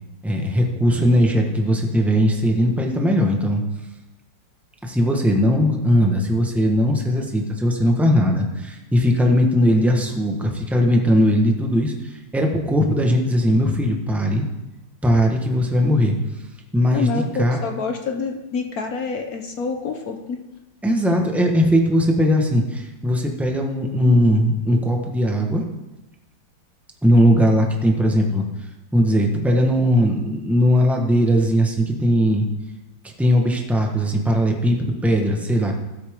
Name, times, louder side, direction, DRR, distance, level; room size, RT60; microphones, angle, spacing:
voice 1, 0.2-3.6 4.8-11.9 12.3-14.4 15.0-16.1 16.7-17.6 20.8-25.6 27.0-28.4 28.9-32.5 33.0-35.7, equal, ahead, 1 dB, 1.0 m, -19 dB
voice 2, 16.9-20.4, left 5 dB, 55° left, 4 dB, 1.1 m, -27 dB
15.5 x 8.5 x 3.7 m, 1.0 s
omnidirectional pair, 2.2 m